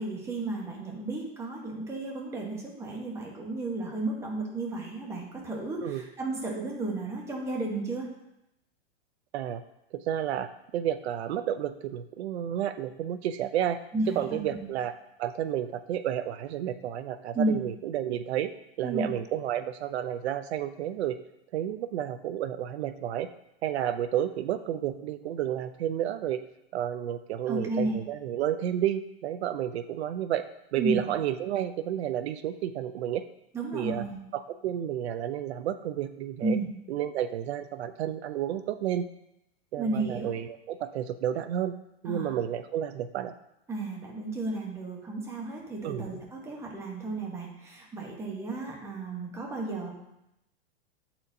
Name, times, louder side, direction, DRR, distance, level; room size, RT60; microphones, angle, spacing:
voice 1, 0.0-8.1 13.9-14.6 17.3-17.6 18.8-19.1 27.5-28.0 30.8-31.0 33.5-34.2 36.4-36.7 39.8-40.3 42.0-42.3 43.7-49.9, right 2 dB, 10° right, -1 dB, 0.9 m, -33 dB
voice 2, 9.9-13.8 14.2-14.9 15.2-18.5 18.8-21.2 21.5-23.3 23.6-26.4 26.7-30.5 30.7-33.2 33.7-34.0 34.3-36.6 36.9-39.1 39.7-41.7 42.0-43.3 45.8-46.1, right 10 dB, 85° right, 11 dB, 0.5 m, -31 dB
8.4 x 4.3 x 2.6 m, 0.86 s
supercardioid pair, 150°, 31 cm